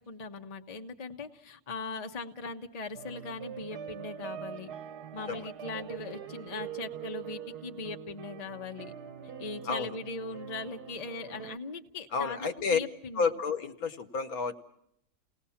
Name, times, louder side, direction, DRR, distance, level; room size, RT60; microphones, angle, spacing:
voice 1, 0.1-4.7 5.1-8.9 9.4-13.3, left 3 dB, 30° left, 4 dB, 1.0 m, -40 dB
sound 1, 2.9-11.6, right 9 dB, 80° right, 1.6 m, -43 dB
voice 2, 9.6-10.0 12.1-12.8 13.1-14.6, left 5 dB, 65° left, 8 dB, 1.5 m, -30 dB
30.0 x 18.5 x 5.7 m, 0.74 s
omnidirectional pair, 1.7 m